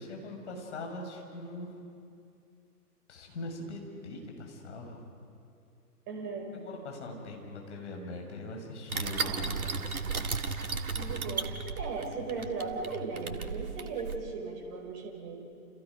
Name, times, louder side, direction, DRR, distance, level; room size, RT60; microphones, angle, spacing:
voice 1, 0.0-1.7 3.1-5.0 6.5-9.4 10.9-11.0, left 2 dB, 45° left, 1 dB, 6.2 m, -41 dB
voice 2, 6.1-6.5 9.1-9.9 11.0-15.5, right 4 dB, 25° right, -1 dB, 5.6 m, -38 dB
sound 1, 8.9-14.2, right 4 dB, 65° right, 1.9 m, -35 dB
30.0 x 29.5 x 5.3 m, 2.5 s
figure-of-eight pair, 130°, 47 cm